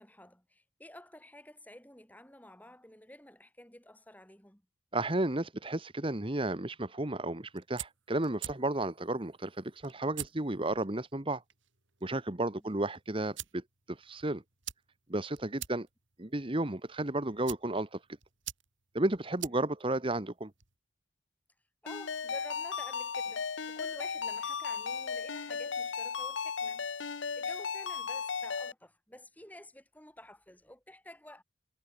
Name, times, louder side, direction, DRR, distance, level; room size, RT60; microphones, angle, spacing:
voice 1, 0.0-4.6 12.5-12.7 19.5-19.6 21.8-26.8 27.4-31.4, left 1 dB, 10° left, 7.6 m, -51 dB
voice 2, 4.9-11.4 12.0-13.6 13.9-14.4 15.1-15.9 16.2-18.0 18.9-20.5, right 2 dB, 25° right, 1.2 m, -33 dB
sound 1, 7.4-20.8, right 12 dB, 80° right, 6.7 m, -48 dB
Ringtone, 21.9-28.7, left 6 dB, 75° left, 0.9 m, -36 dB
head